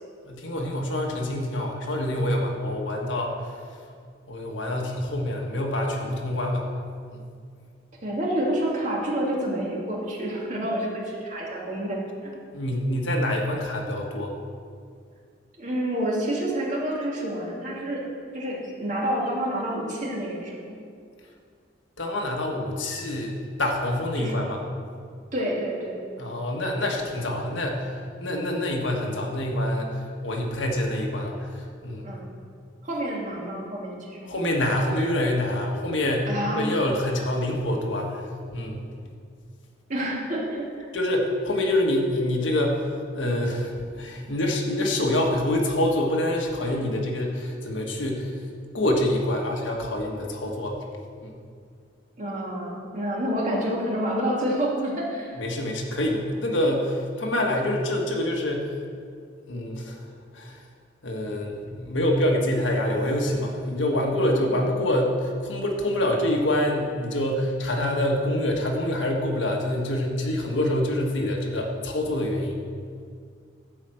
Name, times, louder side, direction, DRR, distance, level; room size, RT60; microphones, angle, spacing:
voice 1, 0.2-3.5 4.3-6.7 7.1-7.2 12.5-14.3 22.0-24.6 26.2-32.1 34.2-38.3 38.5-38.8 40.9-42.9 43.1-48.4 48.7-50.8 51.2-51.4 55.3-58.7 59.5-60.0 60.3-60.6 61.0-72.6, left 1 dB, 80° left, 0 dB, 1.5 m, -26 dB
voice 2, 8.0-12.3 15.6-18.0 18.3-20.7 24.2-24.4 25.3-26.0 32.0-32.2 32.8-34.4 36.3-36.6 39.9-40.9 52.2-55.4 64.5-64.6, right 1 dB, 40° right, -3 dB, 2.3 m, -28 dB
11.5 x 5.1 x 7.7 m, 2.2 s
head